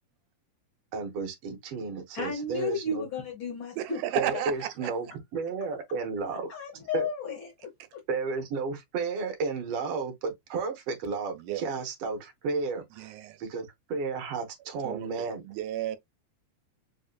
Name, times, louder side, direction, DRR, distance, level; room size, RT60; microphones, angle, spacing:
voice 1, 0.9-3.0 4.1-5.1 5.3-6.5 6.9-7.1 8.1-13.1 13.4-15.4, right 4 dB, 70° right, 1.6 m, -32 dB
voice 2, 2.1-4.0 6.5-7.5, left 4 dB, 65° left, 1.2 m, -33 dB
voice 3, 3.8-4.9 11.3-11.7 13.0-13.4 14.8-16.0, right 13 dB, 90° right, 2.0 m, -34 dB
4.9 x 2.6 x 2.3 m
omnidirectional pair, 3.5 m